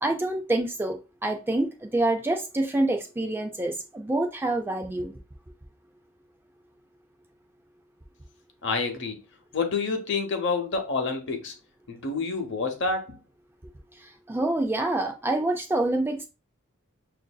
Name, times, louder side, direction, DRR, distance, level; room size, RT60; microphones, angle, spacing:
voice 1, 0.0-5.2 14.0-16.3, right 2 dB, 10° right, 0.4 m, -27 dB
voice 2, 8.6-9.2 9.5-11.5 11.9-13.2, left 4 dB, 55° left, 0.8 m, -28 dB
6.2 x 2.6 x 2.3 m
head